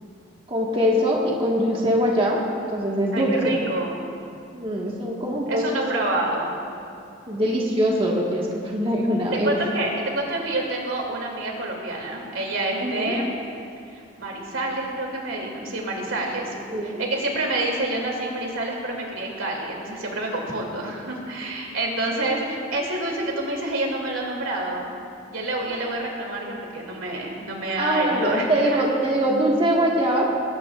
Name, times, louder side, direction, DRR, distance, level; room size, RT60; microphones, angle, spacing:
voice 1, 0.5-2.4 2.7-3.6 4.5-5.8 7.3-9.6 12.8-13.1 16.7-17.0 27.8-30.3, equal, 25° right, -3 dB, 1.6 m, -23 dB
voice 2, 3.1-4.0 5.5-6.6 9.3-13.3 13.9-16.5 16.8-24.9 25.3-28.8, right 2 dB, 90° right, -1 dB, 2.7 m, -28 dB
20.5 x 18.0 x 2.5 m, 2.5 s
head